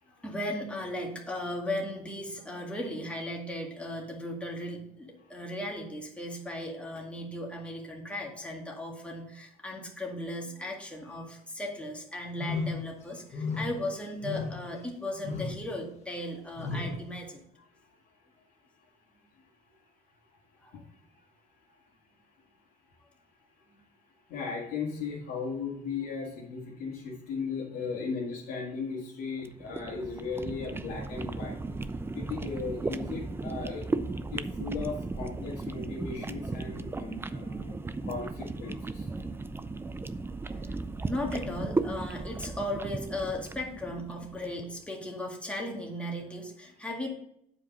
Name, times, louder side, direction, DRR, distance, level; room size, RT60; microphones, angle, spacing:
voice 1, 0.2-17.4 20.6-20.7 40.5-40.6 41.1-47.1, left 1 dB, 5° left, -1 dB, 2.0 m, -36 dB
sound 1, 12.4-12.9 13.3-13.8 14.2-14.7 15.2-15.6 16.6-17.0, left 4 dB, 40° left, 1.7 m, -33 dB
voice 2, 19.4-19.8 20.7-20.8 21.1-21.2 21.7-21.8 22.9-23.0 24.3-33.9 34.3-39.2 39.7-39.8, left 5 dB, 80° left, -6 dB, 2.1 m, -37 dB
sound 2, 29.4-44.6, right 3 dB, 15° right, 0.4 m, -36 dB
8.4 x 5.0 x 5.6 m, 0.73 s
cardioid pair, 110°, 17 cm